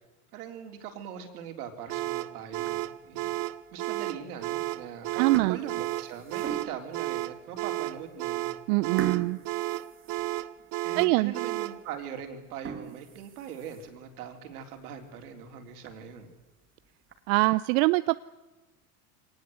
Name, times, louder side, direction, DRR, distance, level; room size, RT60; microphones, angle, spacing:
voice 1, 0.3-3.3 3.7-8.5 10.8-16.3, right 8 dB, 75° right, 4 dB, 4.0 m, -41 dB
sound 1, 1.9-11.8, right 17 dB, 45° right, 1.0 m, -33 dB
sound 2, 2.5-3.1 3.6-3.7 4.6-4.8 5.1-7.0 7.6-7.7 8.0-8.2 9.0-10.7 11.1-11.2 11.7-11.8 12.4-14.1 14.5-14.6 15.0-15.1 15.5-15.6 15.9-16.0 16.9-17.5, right 7 dB, 25° right, 2.1 m, -40 dB
voice 2, 5.2-5.6 8.7-9.4 11.0-11.3 17.3-18.2, right 22 dB, 60° right, 15 dB, 0.6 m, -23 dB
23.0 x 19.0 x 8.1 m, 1.2 s
hypercardioid pair, 100°, 45 cm